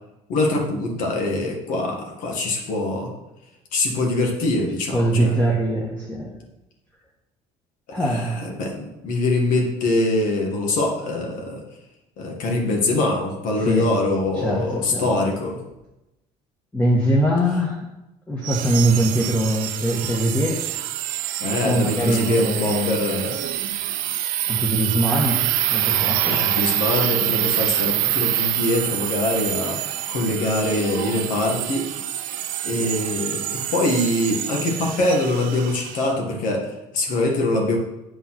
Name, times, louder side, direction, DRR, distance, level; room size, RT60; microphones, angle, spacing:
voice 1, 0.3-3.1 3.7-5.3 8.0-11.6 12.2-15.6 21.4-23.5 26.3-31.9 32.6-37.8, left 2 dB, 65° left, 0 dB, 1.9 m, -23 dB
voice 2, 4.9-6.3 7.9-8.4 13.6-13.9 14.3-15.1 16.7-17.8 18.3-20.6 21.6-23.0 24.5-26.4, right 1 dB, 10° left, -2 dB, 1.4 m, -22 dB
sound 1, 18.4-36.1, right 13 dB, 70° right, 0.7 m, -26 dB
8.4 x 5.5 x 5.9 m, 0.93 s
cardioid pair, 125°, 15 cm